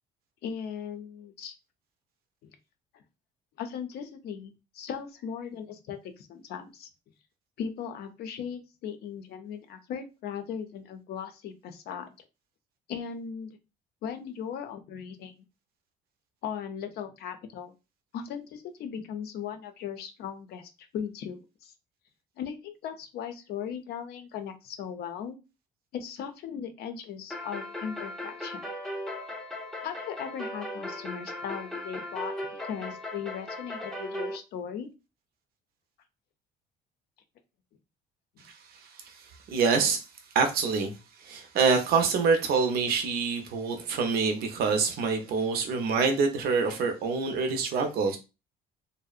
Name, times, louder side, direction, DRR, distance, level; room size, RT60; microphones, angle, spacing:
voice 1, 0.4-1.5 2.4-2.6 2.9-3.0 3.6-6.9 7.6-12.1 12.9-13.6 14.0-15.4 16.4-17.7 18.1-21.7 22.4-25.4 25.9-28.6 29.8-34.9 38.4-38.5, left 7 dB, 70° left, 0.5 m, -38 dB
sound 1, 27.3-34.4, left 1 dB, ahead, 0.5 m, -37 dB
voice 2, 39.5-40.0 40.3-40.9 41.2-48.2, right 5 dB, 65° right, 0.5 m, -26 dB
2.6 x 2.0 x 2.4 m
cardioid pair, 110°, 17 cm